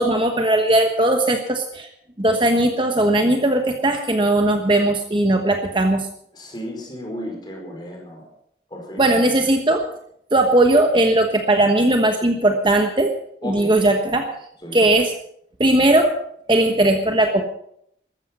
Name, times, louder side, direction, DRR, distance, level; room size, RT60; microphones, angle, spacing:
voice 1, 0.0-1.9 2.2-6.1 9.0-9.8 10.3-13.1 13.4-14.3 14.7-15.1 15.6-16.1 16.5-17.4, right 1 dB, 25° right, 5 dB, 1.2 m, -18 dB
voice 2, 6.3-8.3 8.7-9.3 13.4-13.8 14.6-14.9, equal, 25° left, 1 dB, 4.9 m, -34 dB
14.0 x 14.0 x 6.1 m, 0.71 s
head